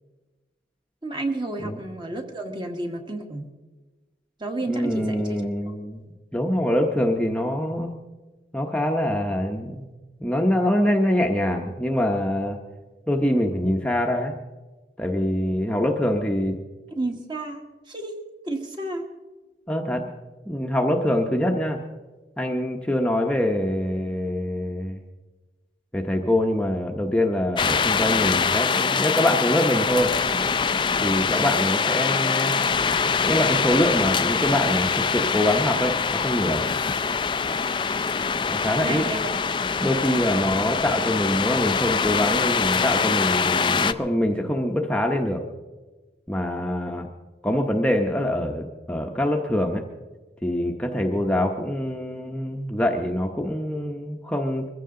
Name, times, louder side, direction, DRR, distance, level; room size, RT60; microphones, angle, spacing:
voice 1, 1.0-3.5 4.4-5.7 16.9-18.2 18.4-19.1 38.8-39.2, right 2 dB, 25° right, 4 dB, 1.6 m, -31 dB
voice 2, 4.7-6.0 6.3-7.9 8.5-9.9 10.2-12.6 13.1-14.3 15.0-16.6 19.7-20.1 20.5-21.8 22.4-25.0 25.9-30.1 31.0-32.6 33.3-36.6 38.5-39.0 39.8-45.4 46.3-47.1 47.4-49.8 50.4-54.7, left 1 dB, 5° left, 2 dB, 0.8 m, -24 dB
sound 1, 27.6-43.9, left 5 dB, 30° left, 0.4 m, -24 dB
22.5 x 15.0 x 3.8 m, 1.2 s
head